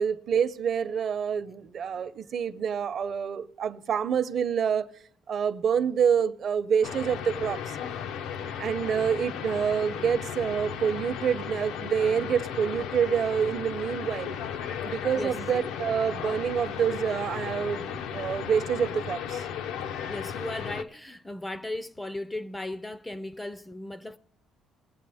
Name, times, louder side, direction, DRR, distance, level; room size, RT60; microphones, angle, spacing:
voice 1, 0.0-4.9 5.3-7.8 8.6-14.3 14.8-19.5, right 7 dB, 45° right, 0.7 m, -27 dB
sound 1, 6.8-20.8, left 8 dB, 80° left, 0.7 m, -35 dB
voice 2, 14.6-15.4 20.1-24.2, left 1 dB, 10° left, 0.4 m, -37 dB
21.0 x 8.4 x 3.5 m
cardioid pair, 140°, 0 cm